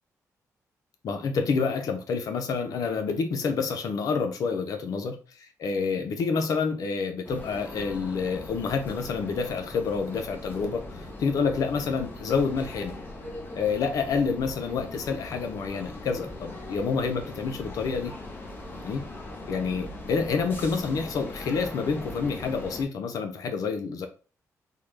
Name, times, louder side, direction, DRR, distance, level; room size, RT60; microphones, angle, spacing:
voice 1, 1.0-5.2 5.6-13.0 13.5-18.1 18.8-19.0 19.5-24.1, left 5 dB, 75° left, 6 dB, 0.6 m, -28 dB
sound 1, 7.2-22.8, left 2 dB, 35° left, 0.8 m, -40 dB
3.7 x 2.1 x 3.2 m, 0.36 s
cardioid pair, 105°, 6 cm